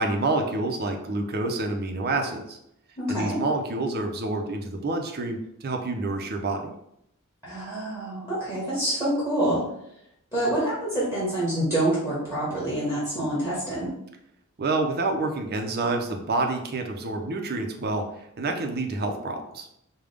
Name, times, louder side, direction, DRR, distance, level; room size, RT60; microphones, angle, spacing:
voice 1, 0.0-2.6 3.1-6.7 14.6-19.7, right 2 dB, 45° right, 4 dB, 0.6 m, -28 dB
voice 2, 3.0-3.4 7.4-9.6 10.3-13.9, right 1 dB, 15° left, -9 dB, 1.5 m, -26 dB
5.0 x 2.2 x 3.4 m, 0.78 s
head